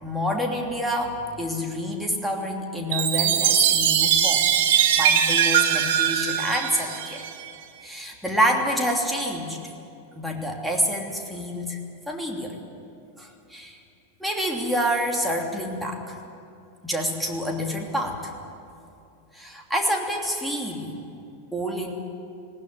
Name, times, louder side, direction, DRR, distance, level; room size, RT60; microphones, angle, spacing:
voice 1, 0.0-4.5 4.9-7.2 7.8-9.6 10.1-11.8 12.1-12.6 13.2-13.8 14.2-16.2 16.8-18.3 19.3-20.9 21.5-21.9, equal, ahead, 0 dB, 3.0 m, -27 dB
Chime, 2.9-7.5, right 9 dB, 55° right, 1.5 m, -21 dB
20.0 x 17.0 x 9.8 m, 2.6 s
figure-of-eight pair, 90°, 0 cm